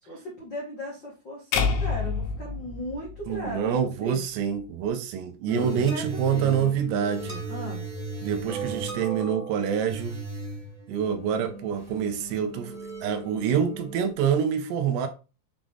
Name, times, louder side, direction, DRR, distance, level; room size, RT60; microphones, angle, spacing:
voice 1, 0.0-4.2 5.5-6.8 7.5-7.8, equal, 60° left, 1.1 m, -37 dB
sound 1, 1.5-3.8, left 5 dB, 80° left, 3.2 m, -28 dB
voice 2, 3.3-7.4 8.2-10.2 10.9-15.1, right 8 dB, 80° right, 2.8 m, -26 dB
sound 2, 5.5-14.1, right 3 dB, 25° right, 0.8 m, -37 dB
7.3 x 3.8 x 3.4 m
omnidirectional pair, 5.2 m